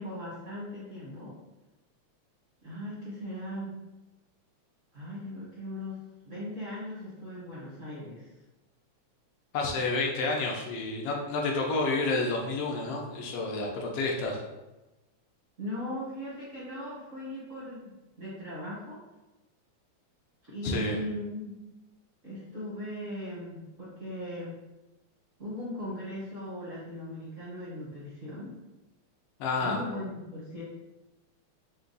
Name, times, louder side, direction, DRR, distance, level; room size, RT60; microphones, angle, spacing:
voice 1, 0.0-1.4 2.6-3.8 4.9-8.3 15.6-19.0 20.4-21.5 22.2-24.6 25.4-28.5 29.6-30.6, left 1 dB, 55° right, -9 dB, 0.8 m, -38 dB
voice 2, 9.5-14.4 20.6-21.0 29.4-29.8, left 3 dB, 75° left, 0 dB, 1.4 m, -29 dB
5.2 x 2.3 x 3.9 m, 1.0 s
omnidirectional pair, 3.3 m